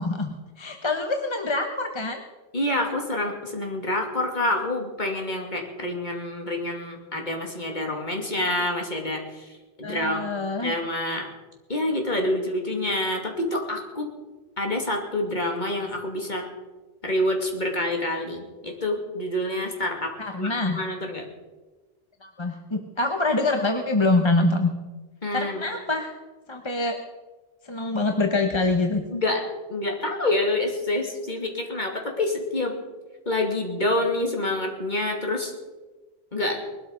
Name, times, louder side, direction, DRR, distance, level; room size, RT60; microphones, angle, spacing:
voice 1, 0.0-2.2 9.8-10.7 20.2-20.8 22.2-24.7 25.3-26.1 26.5-27.0 27.6-29.0, left 2 dB, 25° left, 5 dB, 1.1 m, -25 dB
voice 2, 2.5-10.2 10.6-11.3 11.7-14.2 14.6-16.5 17.0-21.3 25.2-25.6 29.1-32.7 33.3-35.5 36.3-36.6, left 1 dB, 45° left, 2 dB, 2.8 m, -27 dB
20.5 x 12.5 x 5.3 m, 1.2 s
omnidirectional pair, 1.1 m